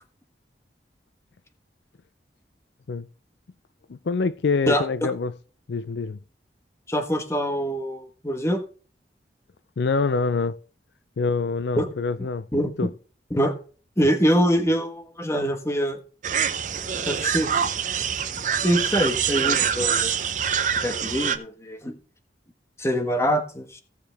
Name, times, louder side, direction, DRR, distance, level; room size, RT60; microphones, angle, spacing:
voice 1, 3.9-5.3 5.7-6.2 9.8-10.6 11.2-12.5 12.8-12.9, left 4 dB, 75° left, 0.5 m, -25 dB
voice 2, 4.7-5.1 6.9-8.6 11.8-11.9 12.5-12.9 13.3-13.6 14.0-16.0 17.1-17.5 18.6-20.1 20.8-22.0 22.8-23.8, equal, 15° left, 1.3 m, -24 dB
sound 1, 16.2-21.4, right 7 dB, 45° right, 0.8 m, -25 dB
16.5 x 6.7 x 3.4 m
head